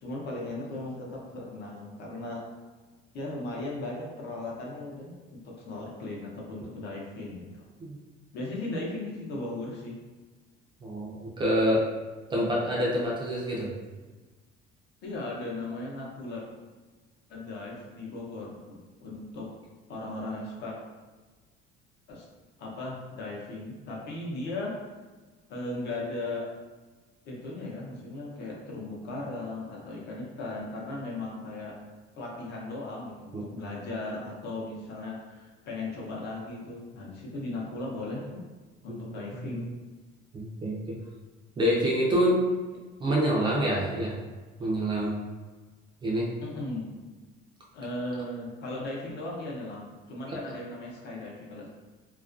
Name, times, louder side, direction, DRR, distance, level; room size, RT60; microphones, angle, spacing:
voice 1, 0.0-2.4 3.1-7.5 8.3-10.0 15.0-16.4 17.3-19.5 19.9-20.8 22.1-22.3 22.6-24.7 25.5-26.5 27.2-31.8 32.1-38.4 38.8-39.7 46.4-47.0 47.7-51.7, left 2 dB, 50° left, -3 dB, 0.6 m, -37 dB
voice 2, 10.8-11.9 12.3-13.7 33.3-33.4 38.9-39.0 39.3-39.6 40.3-41.0 41.6-42.5 43.0-44.2 44.6-45.2 46.0-46.3 50.3-50.4, equal, 20° right, -4 dB, 0.3 m, -27 dB
2.3 x 2.2 x 2.4 m, 1.3 s
cardioid pair, 165°, 21 cm